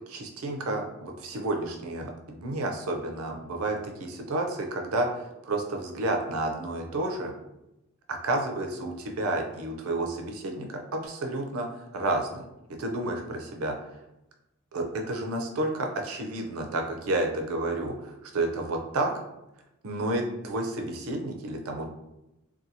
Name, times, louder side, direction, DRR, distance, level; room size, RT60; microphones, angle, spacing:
voice 1, 0.1-7.3 8.1-13.9 14.7-19.1 19.8-21.9, right 2 dB, 85° right, 3 dB, 0.5 m, -31 dB
2.6 x 2.3 x 2.7 m, 0.91 s
head